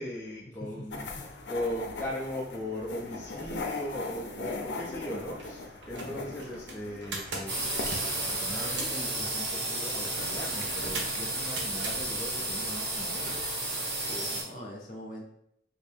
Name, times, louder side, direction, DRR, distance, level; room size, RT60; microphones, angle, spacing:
voice 1, 0.0-7.7 8.2-13.4, left 1 dB, 10° left, -5 dB, 0.4 m, -39 dB
voice 2, 0.6-1.3 6.0-6.2 14.1-15.2, equal, 45° left, -1 dB, 0.7 m, -43 dB
sound 1, 0.9-13.5, left 3 dB, 80° left, 0.5 m, -41 dB
sound 2, 5.4-5.5 5.8-9.1 10.6-12.0 13.2-13.4, right 2 dB, 90° right, 0.7 m, -39 dB
sound 3, 7.5-14.4, right 2 dB, 65° right, 1.2 m, -32 dB
3.2 x 2.6 x 3.4 m, 0.77 s
head